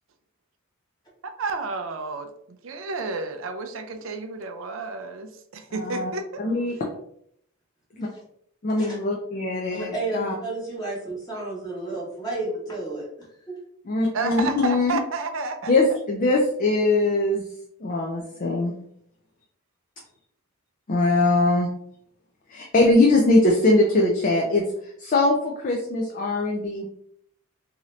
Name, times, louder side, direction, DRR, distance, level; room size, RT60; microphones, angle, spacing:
voice 1, 1.2-2.3 2.6-6.4 14.1-16.0, right 4 dB, 60° right, 0.4 m, -31 dB
voice 2, 5.7-6.1 6.4-6.7 7.9-8.1 8.6-10.3 13.8-15.0 15.7-18.7 20.9-21.7 22.5-26.9, left 2 dB, 35° left, 0.4 m, -22 dB
voice 3, 9.7-13.6, right 2 dB, 15° left, 0.9 m, -32 dB
2.8 x 2.5 x 3.1 m
head